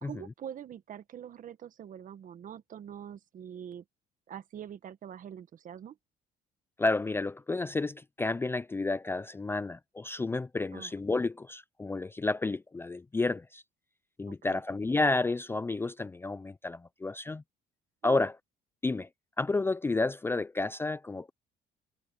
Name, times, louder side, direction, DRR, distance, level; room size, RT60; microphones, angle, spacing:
voice 1, 0.0-3.8 4.3-6.0 10.7-10.9 14.3-14.6 18.0-18.2, right 9 dB, 50° right, 1.6 m, -44 dB
voice 2, 6.8-13.6 14.2-17.4 18.0-18.3 18.8-19.1 19.4-21.3, left 3 dB, 15° left, 0.4 m, -31 dB
cardioid pair, 110°, 17 cm